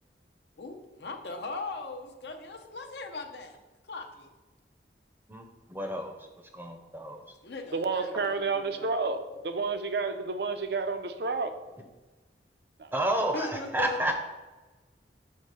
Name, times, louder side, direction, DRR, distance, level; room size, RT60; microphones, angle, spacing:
voice 1, 0.6-3.6 3.8-4.3 7.4-8.9 9.3-9.4 13.3-14.0, left 3 dB, 70° left, 4 dB, 0.8 m, -39 dB
voice 2, 5.3-6.2 6.5-7.2 12.9-14.1, right 1 dB, 10° right, 3 dB, 0.6 m, -30 dB
voice 3, 7.7-11.6 12.8-12.9, right 4 dB, 65° right, 9 dB, 0.6 m, -30 dB
6.5 x 4.2 x 5.6 m, 1.2 s
head